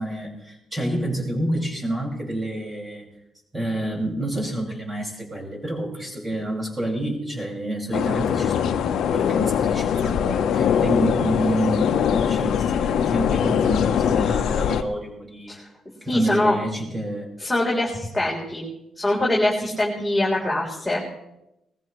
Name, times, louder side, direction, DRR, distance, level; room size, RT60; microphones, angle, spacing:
voice 1, 0.0-3.1 3.5-15.7 16.0-17.3, right 1 dB, 20° right, 0 dB, 5.6 m, -28 dB
sound 1, 7.9-14.8, left 8 dB, 75° left, 0.8 m, -22 dB
voice 2, 16.1-16.6 17.4-18.6 19.0-21.0, left 1 dB, 5° left, -5 dB, 3.8 m, -23 dB
21.0 x 15.0 x 3.2 m, 0.88 s
cardioid pair, 90°, 0 cm